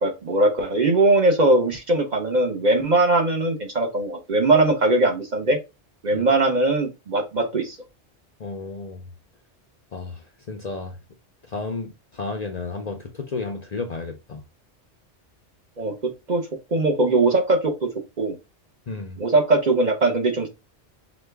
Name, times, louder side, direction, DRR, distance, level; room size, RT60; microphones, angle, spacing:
voice 1, 0.0-5.6 6.0-7.8 15.8-15.9 16.3-16.5 16.7-17.9 18.2-18.4 19.2-20.5, right 2 dB, 45° right, 0.7 m, -20 dB
voice 2, 8.4-9.0 9.9-11.0 11.5-14.4 18.9-19.2, left 3 dB, 50° left, 0.5 m, -32 dB
5.0 x 2.2 x 3.3 m
omnidirectional pair, 1.2 m